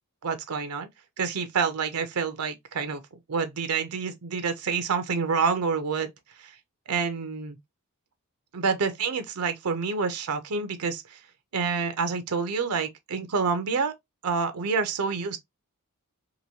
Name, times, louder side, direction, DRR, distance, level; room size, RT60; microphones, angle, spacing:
voice 1, 0.2-0.9 1.2-3.0 3.3-6.1 6.4-6.5 6.9-7.6 8.5-11.2 11.5-13.9 14.2-15.4, right 5 dB, 90° right, 0.6 m, -28 dB
2.9 x 2.6 x 2.7 m
head